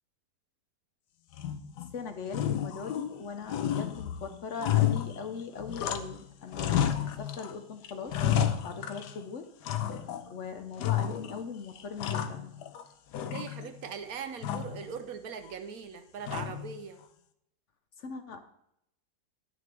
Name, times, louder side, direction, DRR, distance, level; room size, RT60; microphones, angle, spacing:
sound 1, 1.3-1.9 2.3-3.2 3.5-6.2 6.5-7.5 7.8-9.2 9.6-10.3 10.8-11.4 11.8-12.8 13.1-13.9 14.4-14.8 16.3-16.8, left 10 dB, 85° left, 1.3 m, -31 dB
voice 1, 1.9-8.1 8.6-9.5 10.3-12.5 18.0-18.4, left 5 dB, 60° left, 8 dB, 0.8 m, -40 dB
voice 2, 13.2-17.0, right 6 dB, 70° right, 8 dB, 1.1 m, -40 dB
10.5 x 9.3 x 3.3 m, 0.78 s
omnidirectional pair, 1.8 m